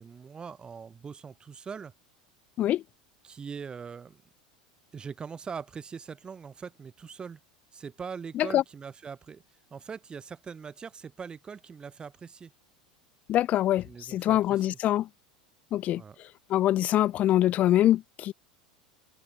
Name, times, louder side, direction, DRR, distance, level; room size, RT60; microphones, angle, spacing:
voice 1, 0.0-1.9 3.2-4.2 4.9-7.4 7.7-9.4 9.7-12.5 13.8-14.8 15.9-16.2, right 6 dB, 25° right, 7.4 m, -42 dB
voice 2, 13.3-13.8 14.1-15.1 15.7-16.0 16.5-18.3, left 13 dB, 40° left, 1.6 m, -24 dB
figure-of-eight pair, 80°, 4 cm